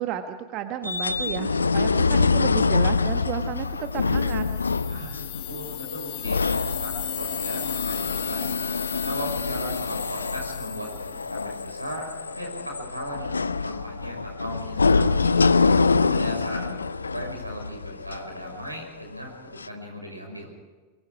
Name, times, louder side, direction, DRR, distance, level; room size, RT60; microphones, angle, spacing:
voice 1, 0.0-4.4, right 10 dB, 40° right, 8 dB, 1.3 m, -32 dB
sound 1, 0.8-19.0 19.6-19.7, left 4 dB, 75° left, 0.6 m, -25 dB
sound 2, 3.6-11.5, left 20 dB, 45° left, 1.0 m, -37 dB
voice 2, 4.9-8.6 9.0-12.1 12.4-13.3 13.6-15.7 16.1-20.5, right 1 dB, 85° right, 2 dB, 5.7 m, -37 dB
23.5 x 23.0 x 4.9 m, 1.4 s
figure-of-eight pair, 90°, 0 cm